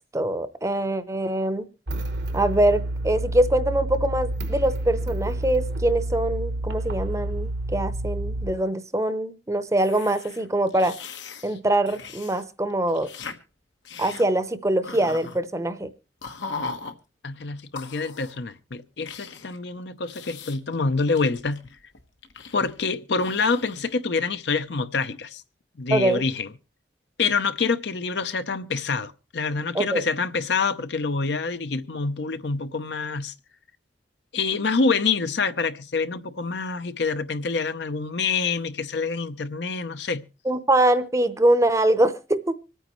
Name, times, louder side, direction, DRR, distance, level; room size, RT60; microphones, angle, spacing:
voice 1, 0.1-1.7 2.3-10.9 11.4-13.1 14.0-15.9 25.9-26.2 29.7-30.0 40.4-42.6, right 1 dB, 15° right, 0.7 m, -23 dB
sound 1, 1.9-8.5, right 1 dB, 70° right, 1.1 m, -29 dB
sound 2, 9.8-12.4 12.7-13.4 13.8-14.3 14.8-15.4 16.2-16.9 17.7-18.4 19.0-19.6 20.0-20.8 21.1-22.8 23.2-24.0, left 4 dB, 85° left, 1.3 m, -39 dB
voice 2, 17.2-21.6 22.5-25.4 25.8-26.5 27.2-33.3 34.3-40.2, left 4 dB, 65° left, 0.7 m, -26 dB
25.5 x 9.2 x 3.1 m
head